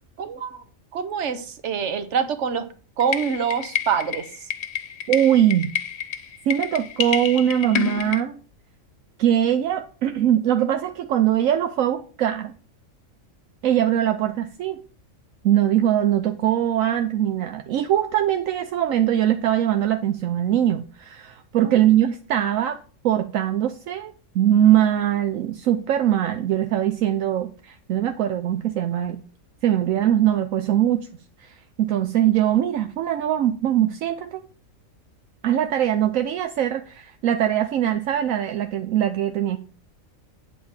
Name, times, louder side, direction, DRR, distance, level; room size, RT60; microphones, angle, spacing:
voice 1, 0.2-0.6 0.9-2.7 3.0-4.2 21.6-21.7, right 7 dB, 60° right, 11 dB, 1.3 m, -25 dB
sound 1, 3.0-8.2, left 8 dB, 55° left, 1.1 m, -29 dB
voice 2, 5.1-5.7 6.4-8.4 9.2-12.5 13.6-14.8 15.4-22.8 23.0-29.2 29.6-31.1 31.4-34.4 35.4-39.6, right 11 dB, 75° right, 8 dB, 1.0 m, -21 dB
8.5 x 4.3 x 7.2 m, 0.38 s
omnidirectional pair, 1.4 m